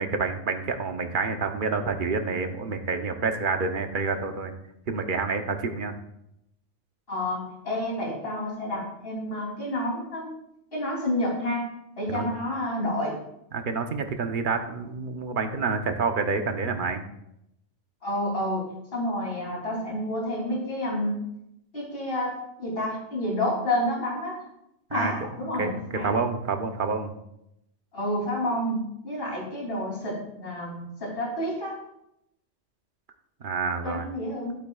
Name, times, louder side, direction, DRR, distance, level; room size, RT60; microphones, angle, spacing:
voice 1, 0.0-4.5 4.9-5.9 12.1-12.3 13.5-17.0 24.9-25.1 25.6-25.8 26.0-27.1 33.4-34.1, right 4 dB, 50° right, 6 dB, 0.9 m, -28 dB
voice 2, 7.1-10.3 10.7-11.7 12.0-13.2 18.0-21.2 21.7-24.4 24.9-26.1 27.9-31.8 33.8-34.5, left 1 dB, 50° left, -3 dB, 3.3 m, -29 dB
11.5 x 8.5 x 2.3 m, 0.81 s
omnidirectional pair, 1.2 m